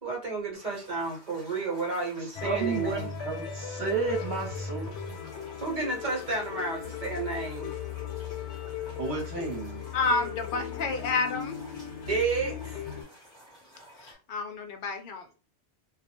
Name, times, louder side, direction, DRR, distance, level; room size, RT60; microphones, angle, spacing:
voice 1, 0.0-3.1 5.6-7.7 12.0-12.8, right 4 dB, 45° right, -2 dB, 1.1 m, -31 dB
sound 1, 0.5-14.1, right 1 dB, 5° left, 1.0 m, -52 dB
sound 2, 2.4-13.0, left 7 dB, 90° left, 0.9 m, -37 dB
voice 2, 2.4-5.0 9.0-9.8, right 4 dB, 75° right, 0 dB, 1.0 m, -32 dB
voice 3, 9.9-11.6 14.0-15.3, left 3 dB, 60° left, 5 dB, 0.6 m, -30 dB
2.3 x 2.0 x 2.8 m, 0.36 s
omnidirectional pair, 1.1 m